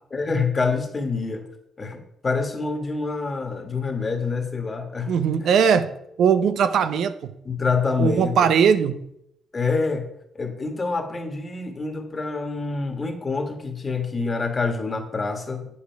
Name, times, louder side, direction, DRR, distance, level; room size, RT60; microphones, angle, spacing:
voice 1, 0.1-1.4 1.8-5.1 7.4-8.5 9.5-10.1 10.3-15.7, left 4 dB, 30° left, 6 dB, 1.6 m, -26 dB
voice 2, 5.1-5.9 6.2-7.3 8.0-9.0, right 7 dB, 70° right, 11 dB, 0.6 m, -19 dB
8.4 x 7.5 x 4.6 m, 0.77 s
cardioid pair, 90°, 0 cm